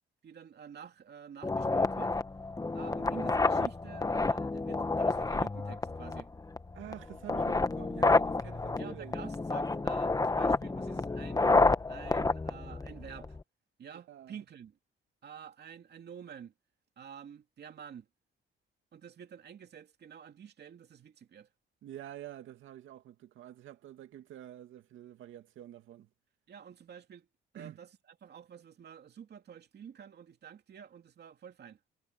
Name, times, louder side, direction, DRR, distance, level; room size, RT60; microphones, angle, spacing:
voice 1, 0.2-2.2 2.7-6.3 8.8-11.5 11.9-13.4 13.8-14.8 15.2-16.5 17.0-18.1 18.9-21.5 26.5-27.3 27.5-31.8, right 8 dB, 55° right, 2.7 m, -49 dB
sound 1, 1.4-13.4, left 3 dB, 20° left, 1.4 m, -29 dB
voice 2, 6.7-9.2 13.9-14.4 21.8-26.1 27.6-27.8, right 12 dB, 80° right, 2.3 m, -48 dB
cardioid pair, 90°, 20 cm